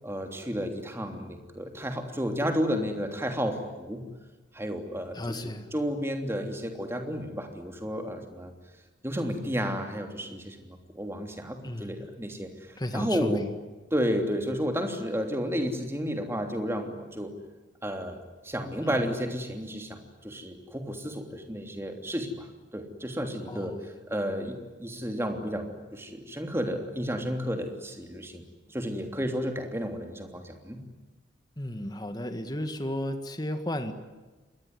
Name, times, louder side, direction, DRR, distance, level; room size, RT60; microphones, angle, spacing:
voice 1, 0.0-4.0 4.5-5.4 5.7-8.5 9.0-12.5 12.9-13.4 13.9-17.3 17.8-18.2 18.4-20.0 20.2-22.5 22.7-28.4 28.7-30.8, equal, 15° right, 5 dB, 3.2 m, -32 dB
voice 2, 5.1-5.7 11.6-12.1 12.8-13.5 18.8-19.1 23.5-23.9 31.6-33.9, left 1 dB, 20° left, 8 dB, 1.9 m, -34 dB
27.5 x 21.5 x 9.7 m, 1.2 s
head